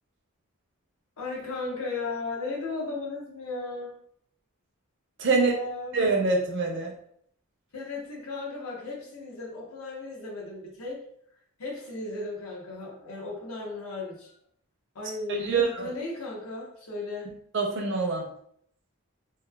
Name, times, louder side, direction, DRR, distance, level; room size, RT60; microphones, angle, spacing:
voice 1, 1.2-3.9 5.3-6.0 7.7-11.0 11.6-14.3 14.9-17.3, left 3 dB, 80° left, -3 dB, 0.9 m, -35 dB
voice 2, 5.2-5.5 5.9-6.9 15.3-15.8 17.5-18.2, right 4 dB, 55° right, 1 dB, 0.5 m, -25 dB
3.0 x 2.1 x 2.2 m, 0.67 s
head